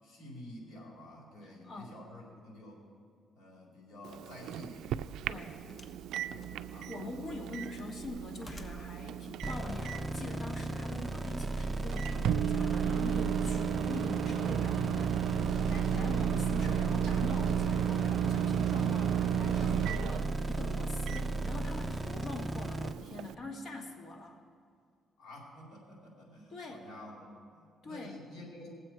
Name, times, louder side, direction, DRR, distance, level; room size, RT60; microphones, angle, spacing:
voice 1, 0.0-2.8 3.4-5.8 6.3-7.5 25.2-28.7, left 1 dB, 75° left, -2 dB, 4.1 m, -50 dB
voice 2, 1.4-2.0 5.3-5.6 6.9-24.4 26.5-26.9 27.8-28.3, left 2 dB, 55° left, 1 dB, 2.0 m, -44 dB
Microwave oven, 4.0-23.3, right 10 dB, 85° right, 0.3 m, -34 dB
sound 1, 5.7-6.1 6.4-7.1 7.5-9.0 9.9-10.0, left 1 dB, 25° left, 0.9 m, -51 dB
sound 2, 9.4-22.9, right 2 dB, 15° right, 0.5 m, -35 dB
20.0 x 7.8 x 4.6 m, 2.2 s
cardioid pair, 90°, 0 cm